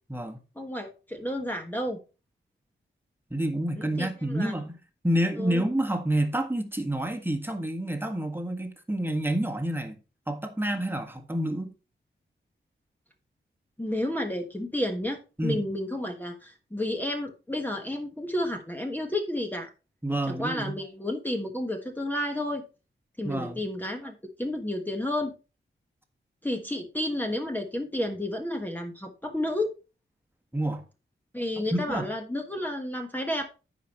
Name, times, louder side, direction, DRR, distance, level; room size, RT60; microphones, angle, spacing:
voice 1, 0.6-2.0 3.8-4.5 5.4-5.6 13.8-19.7 20.3-22.6 23.2-25.3 26.4-29.7 31.3-33.5, left 1 dB, 10° left, 1.3 m, -31 dB
voice 2, 3.3-4.7 5.0-10.0 10.3-11.7 15.4-15.6 20.0-20.8 23.2-23.6 30.5-30.8 31.7-32.1, right 1 dB, 10° right, 1.5 m, -28 dB
15.0 x 5.1 x 3.0 m
wide cardioid pair, 80°, 20 cm